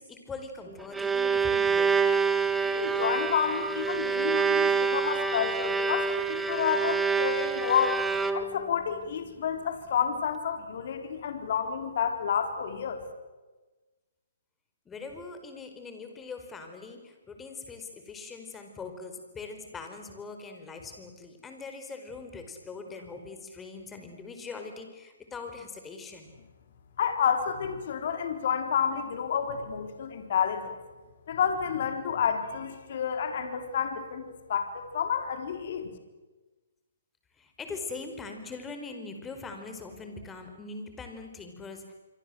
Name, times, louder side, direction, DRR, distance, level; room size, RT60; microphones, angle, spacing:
voice 1, 0.0-1.9 14.8-26.3 37.4-41.9, left 4 dB, 10° left, 6 dB, 4.6 m, -42 dB
Bowed string instrument, 0.7-8.7, right 5 dB, 5° right, 1.5 m, -27 dB
voice 2, 2.7-8.0 8.3-13.0 27.0-30.7 31.3-35.9, left 7 dB, 55° left, 6 dB, 4.2 m, -30 dB
27.0 x 25.0 x 7.8 m, 1.2 s
hypercardioid pair, 150°, 0 cm